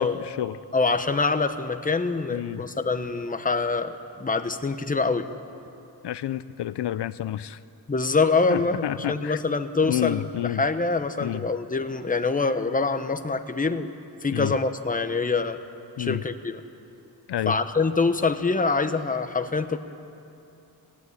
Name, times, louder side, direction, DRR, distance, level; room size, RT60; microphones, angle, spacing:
voice 1, 0.0-0.6 2.3-2.7 6.0-7.6 8.5-9.4 9.8-10.6 11.2-11.5 14.3-14.5 16.0-16.2 17.3-17.6, left 12 dB, 75° left, 15 dB, 0.6 m, -29 dB
voice 2, 0.7-5.3 7.9-13.9 14.2-15.6 16.0-16.6 17.5-19.8, left 4 dB, 20° left, 8 dB, 0.9 m, -25 dB
26.0 x 15.0 x 9.7 m, 2.8 s
wide cardioid pair, 135°, 41 cm